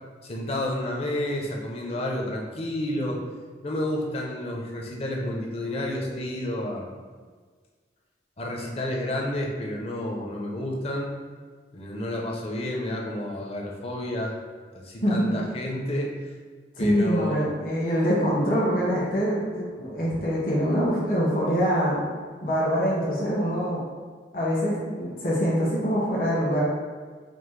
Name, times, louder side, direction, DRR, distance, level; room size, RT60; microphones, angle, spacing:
voice 1, 0.2-3.2 3.6-6.9 8.4-11.1 11.7-14.4 14.7-16.3 16.8-17.5, left 1 dB, 35° left, -1 dB, 0.6 m, -30 dB
voice 2, 15.0-15.3 16.8-22.0 22.4-23.8 24.3-26.6, equal, 55° left, -7 dB, 1.1 m, -24 dB
5.1 x 2.1 x 3.1 m, 1.5 s
head